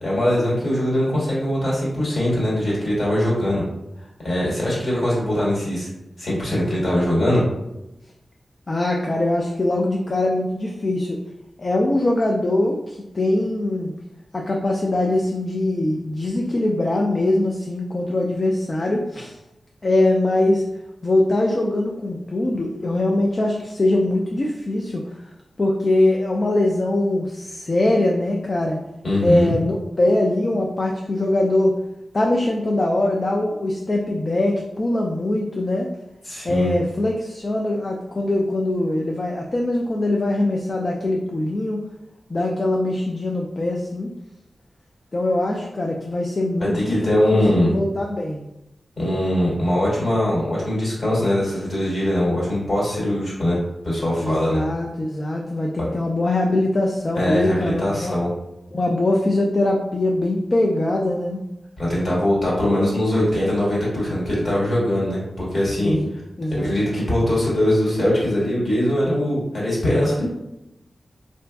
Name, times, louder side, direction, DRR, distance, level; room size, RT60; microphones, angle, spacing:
voice 1, 0.0-3.6 4.2-5.9 6.2-7.4 29.0-29.5 36.2-36.7 46.6-47.7 49.0-53.6 53.8-54.6 55.8-55.9 57.1-58.3 61.8-66.0 66.5-70.3, left 1 dB, 55° left, -6 dB, 1.5 m, -21 dB
voice 2, 8.7-11.2 11.6-13.9 14.3-19.3 19.8-20.6 21.0-25.0 25.6-28.8 29.2-31.7 32.1-35.9 36.4-41.8 42.3-44.1 45.1-47.0 47.5-48.4 54.2-58.1 58.7-61.4 65.8-66.1 66.4-66.7, left 1 dB, 35° left, 0 dB, 0.3 m, -22 dB
3.8 x 2.5 x 2.2 m, 0.92 s
wide cardioid pair, 130°, 0 cm